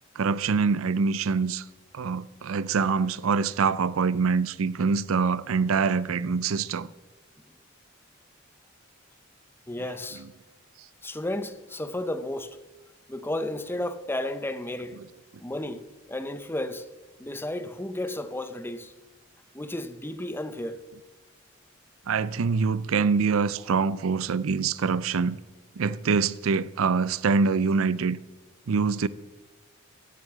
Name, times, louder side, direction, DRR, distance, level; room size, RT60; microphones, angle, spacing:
voice 1, 0.2-1.6 1.9-6.9 22.1-25.4 25.8-28.2 28.7-29.1, right 5 dB, 80° right, 0.5 m, -25 dB
voice 2, 9.7-10.2 11.0-12.6 13.1-15.0 15.4-16.9 17.2-18.9 19.5-20.8, left 1 dB, 10° left, 0.8 m, -33 dB
16.5 x 9.4 x 7.4 m
head